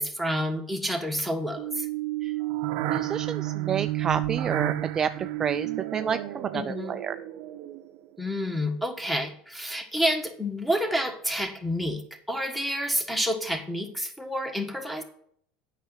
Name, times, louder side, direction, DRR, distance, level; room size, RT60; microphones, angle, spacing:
voice 1, 0.0-1.9 6.5-7.0 8.2-15.0, equal, ahead, 6 dB, 1.4 m, -29 dB
sound 1, 1.6-8.0, right 15 dB, 65° right, 0.6 m, -31 dB
voice 2, 2.9-7.2, right 7 dB, 25° right, 10 dB, 0.3 m, -30 dB
8.3 x 5.9 x 5.6 m, 0.63 s
supercardioid pair, 120°, 2 cm